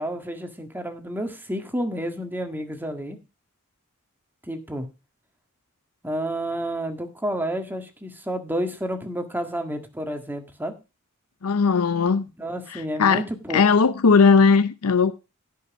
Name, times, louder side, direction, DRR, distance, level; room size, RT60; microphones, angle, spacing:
voice 1, 0.0-3.2 4.5-4.9 6.0-10.7 12.4-13.6, equal, 10° right, 1.7 m, -30 dB
voice 2, 11.4-12.3 12.7-13.2 13.5-15.1, left 5 dB, 85° left, 0.7 m, -18 dB
16.0 x 5.7 x 5.2 m
head